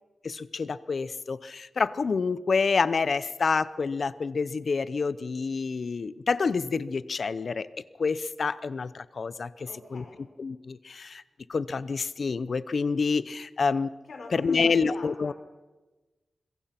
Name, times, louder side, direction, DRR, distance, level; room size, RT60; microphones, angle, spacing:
voice 1, 0.2-7.7 8.0-10.0 10.4-11.2 11.5-13.9 14.3-15.3, left 4 dB, 50° left, 16 dB, 0.7 m, -28 dB
voice 2, 9.6-10.2 14.1-15.3, left 3 dB, 65° left, 4 dB, 4.7 m, -44 dB
26.0 x 22.5 x 5.9 m, 1.2 s
wide cardioid pair, 175°, 0 cm